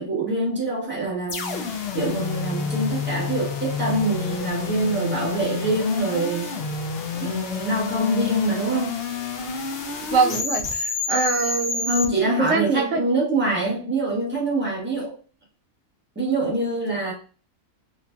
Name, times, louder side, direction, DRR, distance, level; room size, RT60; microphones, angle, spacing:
voice 1, 0.0-6.6 7.2-9.0 11.9-15.1 16.1-17.1, right 2 dB, 10° right, 0.9 m, -25 dB
sound 1, 1.3-12.1, left 5 dB, 75° left, 0.5 m, -29 dB
voice 2, 10.1-11.9 12.4-13.0, right 4 dB, 65° right, 0.8 m, -23 dB
3.1 x 2.5 x 2.2 m
omnidirectional pair, 1.6 m